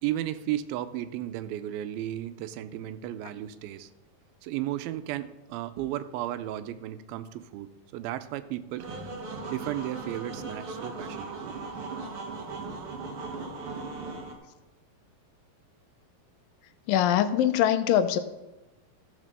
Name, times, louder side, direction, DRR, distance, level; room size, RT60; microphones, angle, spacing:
voice 1, 0.0-3.9 4.4-8.9 9.4-11.5, right 13 dB, 90° right, 12 dB, 2.4 m, -34 dB
sound 1, 8.8-14.3, right 3 dB, 50° right, 2.2 m, -38 dB
voice 2, 16.9-18.2, left 10 dB, 80° left, 10 dB, 2.2 m, -23 dB
14.5 x 5.8 x 6.7 m, 1.1 s
omnidirectional pair, 4.2 m